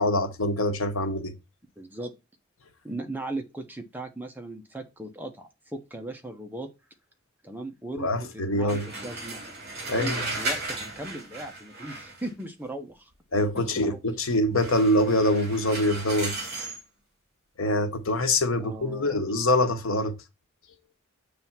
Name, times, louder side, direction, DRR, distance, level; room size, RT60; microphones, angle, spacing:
voice 1, 0.0-1.3 8.0-8.9 9.9-10.2 13.3-16.3 17.6-20.1, left 1 dB, 75° left, 1.1 m, -24 dB
voice 2, 1.8-2.1 2.8-6.7 7.4-9.4 9.9-13.1 13.8-14.0 18.6-19.2, right 2 dB, 10° right, 0.8 m, -38 dB
sound 1, 8.7-12.4 14.6-16.8, right 2 dB, 50° right, 2.3 m, -35 dB
7.5 x 3.4 x 5.8 m
head